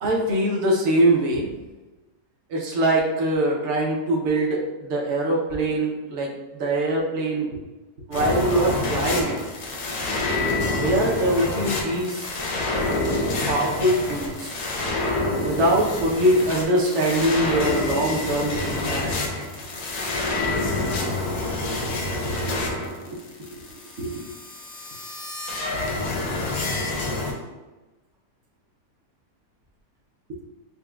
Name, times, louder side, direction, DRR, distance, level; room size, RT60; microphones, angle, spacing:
voice 1, 0.0-1.5 2.5-7.5 8.1-9.4 10.8-12.3 13.5-14.6 15.4-19.4 22.5-22.7 23.0-23.6 24.0-24.2, right 1 dB, 55° right, -2 dB, 0.8 m, -23 dB
sound 1, 8.1-27.3, left 2 dB, 65° left, 0.7 m, -27 dB
5.8 x 2.2 x 2.3 m, 1.1 s
omnidirectional pair, 1.8 m